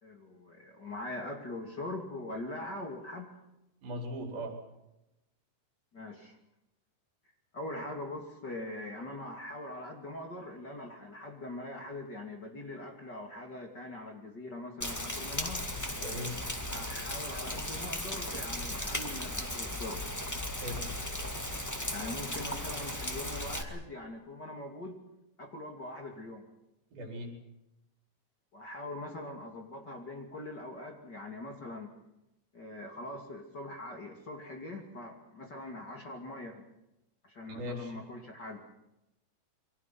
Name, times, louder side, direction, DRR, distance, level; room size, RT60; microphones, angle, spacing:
voice 1, 0.0-3.3 5.9-6.4 7.5-15.7 16.7-20.0 21.9-25.0 25.4-26.4 28.5-31.9 32.5-36.6 37.2-38.6, left 1 dB, 30° left, 3 dB, 2.8 m, -42 dB
voice 2, 3.8-4.6 16.0-16.4 20.6-20.8 26.9-27.3 37.6-38.0, equal, 75° right, 3 dB, 6.3 m, -39 dB
Rain, 14.8-23.6, left 1 dB, 10° left, 1.0 m, -36 dB
28.5 x 23.5 x 6.0 m, 0.90 s
omnidirectional pair, 4.2 m